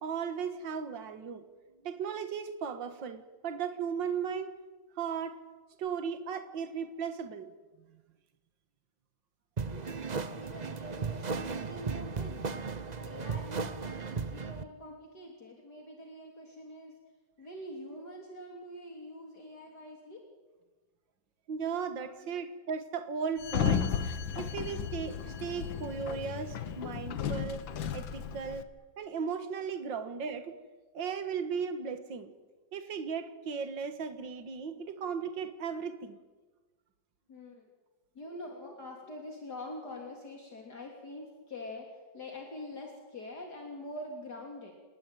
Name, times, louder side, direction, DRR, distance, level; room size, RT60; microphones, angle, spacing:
voice 1, 0.0-1.4 1.8-4.5 5.0-5.4 5.8-7.5 21.5-23.9 24.4-27.7 27.9-28.7 29.0-30.6 30.9-32.3 32.7-36.2, right 6 dB, 70° right, 9 dB, 2.3 m, -36 dB
voice 2, 9.6-12.5 13.0-17.0 17.4-20.2 22.2-22.4 24.0-24.1 27.2-27.5 31.7-31.8 37.3-37.7 38.2-44.7, left 1 dB, 55° left, 1 dB, 3.7 m, -45 dB
sound 1, 9.6-14.6, right 4 dB, 40° right, 0.6 m, -36 dB
Sliding door, 23.4-28.6, left 7 dB, 80° left, 2.0 m, -34 dB
29.5 x 19.0 x 9.2 m, 1.3 s
omnidirectional pair, 2.1 m